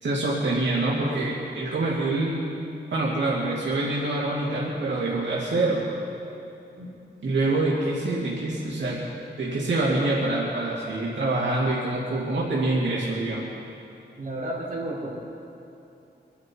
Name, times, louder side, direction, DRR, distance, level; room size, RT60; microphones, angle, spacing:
voice 1, 0.0-2.4 2.9-5.9 7.2-9.0 9.4-13.5, right 2 dB, 75° right, -6 dB, 2.3 m, -25 dB
voice 2, 14.2-15.1, right 1 dB, 45° right, -7 dB, 4.0 m, -32 dB
24.5 x 11.0 x 4.5 m, 2.8 s
wide cardioid pair, 175°, 19 cm